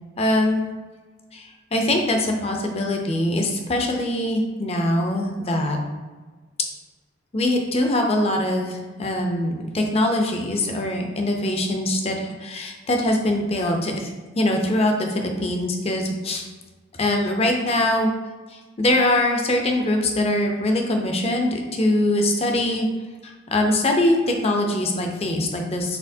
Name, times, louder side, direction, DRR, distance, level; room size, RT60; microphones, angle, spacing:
voice 1, 0.2-0.6 1.3-5.8 7.3-16.5 17.0-18.1 18.5-22.9 23.2-26.0, left 1 dB, 30° left, 2 dB, 0.5 m, -23 dB
4.3 x 4.3 x 2.7 m, 1.3 s
head